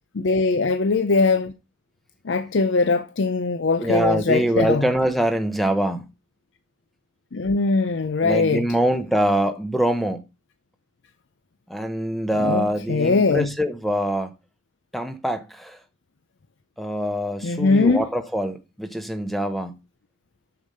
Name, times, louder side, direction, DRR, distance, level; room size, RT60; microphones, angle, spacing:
voice 1, 0.1-1.5 2.2-4.9 7.3-8.7 12.4-13.5 17.4-18.1, left 3 dB, 60° left, 0.5 m, -21 dB
voice 2, 3.8-6.1 8.2-10.2 11.7-14.3 14.9-15.8 16.8-19.7, equal, ahead, 0.7 m, -24 dB
6.9 x 6.6 x 5.3 m
head